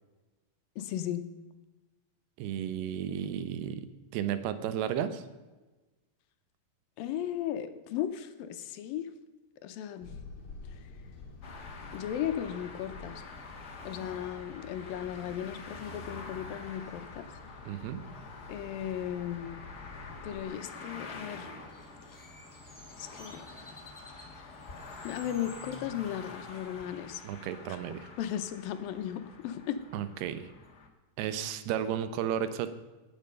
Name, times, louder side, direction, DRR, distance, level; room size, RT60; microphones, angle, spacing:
voice 1, 0.8-1.3 7.0-9.1 9.6-10.1 11.9-13.2 13.9-17.3 18.5-19.7 20.2-21.5 23.0-23.4 24.4-24.5 25.0-27.2 28.2-29.8, left 10 dB, 75° left, 10 dB, 2.4 m, -36 dB
voice 2, 2.4-5.2 17.7-18.0 27.2-28.1 29.9-30.5 31.2-32.7, right 9 dB, 85° right, 12 dB, 3.0 m, -33 dB
sound 1, 10.0-20.5, left 3 dB, 40° left, 2.3 m, -49 dB
sound 2, 11.4-30.9, left 3 dB, 60° left, 1.0 m, -47 dB
Bird, 21.6-26.6, left 1 dB, 10° left, 0.9 m, -54 dB
19.5 x 9.2 x 5.3 m, 1.2 s
omnidirectional pair, 4.6 m